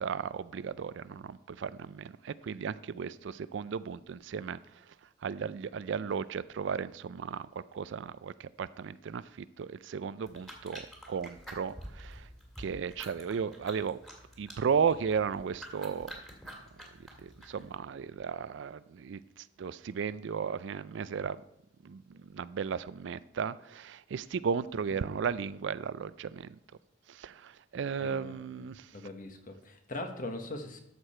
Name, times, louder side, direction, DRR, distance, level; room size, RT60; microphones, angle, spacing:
voice 1, 0.0-4.6 5.2-7.5 7.7-12.3 12.6-14.0 14.4-16.1 17.2-21.4 21.8-26.6 27.1-28.9, right 6 dB, 65° right, 0.4 m, -35 dB
sound 1, 10.2-17.8, equal, ahead, 2.0 m, -49 dB
voice 2, 28.0-28.4 28.9-30.8, left 2 dB, 45° left, 1.3 m, -40 dB
12.5 x 6.7 x 4.3 m
head